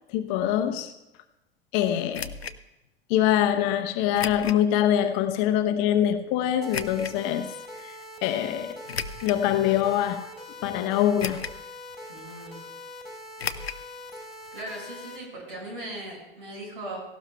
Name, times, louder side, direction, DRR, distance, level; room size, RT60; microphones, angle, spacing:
voice 1, 0.1-0.9 1.7-2.3 3.1-7.5 7.8-8.0 8.2-8.8 9.2-10.3 10.6-11.5, left 11 dB, 45° left, 0.8 m, -24 dB
sound 1, 2.1-2.6 4.1-4.6 5.2-5.3 6.7-7.2 8.9-9.5 10.1-10.2 11.2-11.7 11.9-12.0 13.4-13.8 14.1-14.2 14.5-14.6, left 6 dB, 85° left, 0.5 m, -34 dB
sound 2, 6.6-15.2, left 1 dB, ahead, 3.6 m, -43 dB
voice 2, 12.1-12.6 14.5-17.0, right 1 dB, 65° right, 5.5 m, -38 dB
17.5 x 16.0 x 2.3 m
figure-of-eight pair, 80°, 30 cm